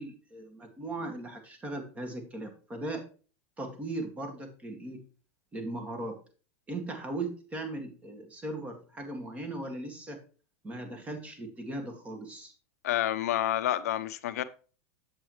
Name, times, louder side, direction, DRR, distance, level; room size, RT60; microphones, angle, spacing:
voice 1, 0.0-3.1 3.6-5.0 5.5-6.1 6.7-10.2 10.6-12.5, right 2 dB, 15° right, 1.9 m, -38 dB
voice 2, 12.8-14.4, left 13 dB, 80° left, 0.8 m, -29 dB
8.0 x 7.6 x 3.1 m
supercardioid pair, 135°, 8 cm